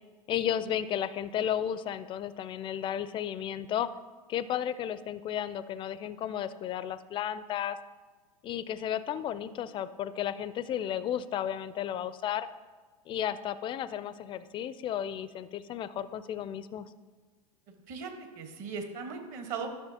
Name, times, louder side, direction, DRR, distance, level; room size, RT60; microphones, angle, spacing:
voice 1, 0.3-3.9 4.3-7.8 8.4-12.5 13.1-16.9, left 10 dB, 25° left, 14 dB, 0.4 m, -33 dB
voice 2, 17.7-19.7, right 5 dB, 45° right, 5 dB, 1.3 m, -38 dB
11.5 x 6.1 x 2.8 m, 1.4 s
hypercardioid pair, 95°, 19 cm